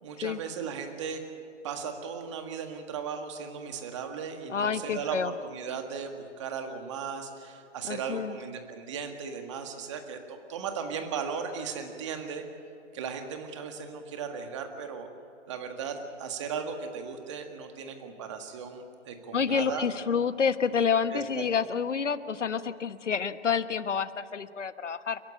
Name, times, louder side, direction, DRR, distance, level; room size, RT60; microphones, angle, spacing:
voice 1, 0.0-1.2 1.6-12.4 12.9-15.1 15.5-19.8 21.1-21.4, right 6 dB, 25° right, 5 dB, 1.8 m, -37 dB
voice 2, 4.5-5.3 7.8-8.4 19.3-25.2, left 6 dB, 80° left, 12 dB, 1.3 m, -28 dB
29.5 x 12.0 x 8.7 m, 2.6 s
hypercardioid pair, 165°, 36 cm